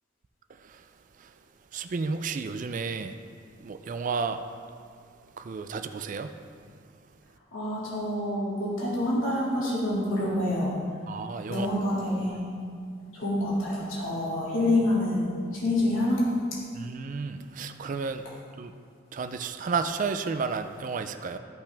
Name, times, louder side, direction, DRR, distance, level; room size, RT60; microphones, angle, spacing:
voice 1, 1.7-3.1 3.6-4.4 5.4-6.3 11.1-11.7 16.7-18.2 18.6-18.7 19.1-21.4, right 5 dB, 40° right, 8 dB, 0.3 m, -32 dB
voice 2, 7.5-10.7 11.5-12.4 13.1-16.2, left 1 dB, 75° left, -6 dB, 2.4 m, -27 dB
13.5 x 5.8 x 3.4 m, 2.2 s
head